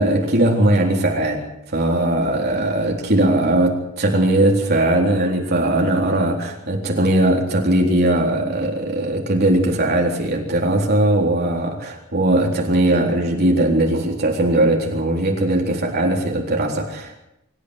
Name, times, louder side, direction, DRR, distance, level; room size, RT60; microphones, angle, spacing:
voice 1, 0.0-1.4 1.7-17.2, right 1 dB, 50° right, 0 dB, 3.9 m, -19 dB
26.0 x 13.5 x 8.2 m, 0.80 s
head